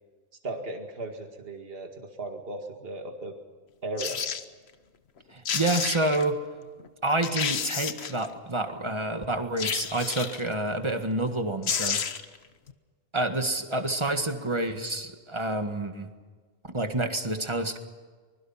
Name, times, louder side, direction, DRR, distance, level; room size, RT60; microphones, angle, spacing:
voice 1, 0.4-3.3 3.8-4.2, right 2 dB, 50° right, 4 dB, 2.3 m, -36 dB
sound 1, 4.0-4.4 5.2-5.3 5.4-6.3 6.8-6.9 7.2-8.3 9.6-10.5 11.3-11.4 11.6-12.4 12.7-12.8, left 7 dB, 55° left, 1.2 m, -30 dB
voice 2, 5.3-6.4 7.0-12.0 13.1-16.1 16.7-17.8, right 2 dB, 20° right, 7 dB, 1.8 m, -28 dB
24.5 x 21.5 x 5.8 m, 1.5 s
omnidirectional pair, 1.3 m